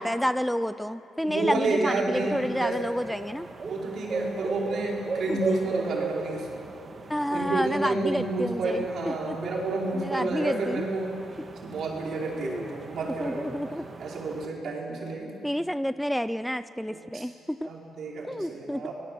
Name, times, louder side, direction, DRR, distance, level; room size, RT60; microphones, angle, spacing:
voice 1, 0.0-3.5 5.3-5.4 7.1-9.4 9.9-10.8 12.4-12.6 13.2-13.8 15.4-17.7 18.2-18.8, equal, ahead, 13 dB, 0.5 m, -29 dB
voice 2, 1.2-2.8 3.6-6.5 7.3-11.1 11.6-13.5 14.0-15.3 16.9-17.2 17.6-18.9, right 3 dB, 65° right, -2 dB, 5.2 m, -30 dB
sound 1, 2.1-14.5, right 3 dB, 35° right, 1.9 m, -38 dB
27.0 x 19.0 x 7.8 m, 2.8 s
cardioid pair, 90°, 0 cm